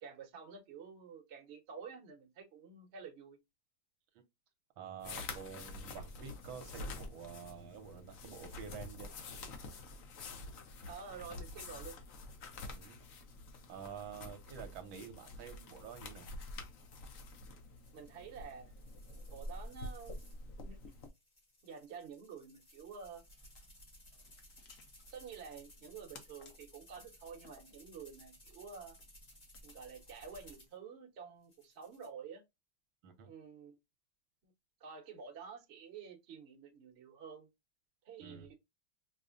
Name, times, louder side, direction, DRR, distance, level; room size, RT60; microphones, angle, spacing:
voice 1, 0.0-3.4 10.9-12.0 17.9-18.7 19.2-20.2 20.6-20.8 21.6-23.2 25.1-29.0 29.6-32.4 33.2-33.8 34.4-34.5 34.8-37.5 38.0-38.5, right 6 dB, 45° right, 0.9 m, -50 dB
voice 2, 4.8-9.1 12.7-13.0 13.7-16.3 33.0-33.3 38.2-38.5, right 7 dB, 70° right, 1.5 m, -49 dB
sound 1, 5.0-21.1, left 2 dB, 85° left, 0.7 m, -48 dB
sound 2, 17.8-20.4 20.8-30.8 31.4-32.1, equal, 30° left, 1.0 m, -60 dB
sound 3, 23.2-30.8, left 5 dB, 60° left, 1.1 m, -64 dB
5.2 x 2.1 x 2.5 m
omnidirectional pair, 2.3 m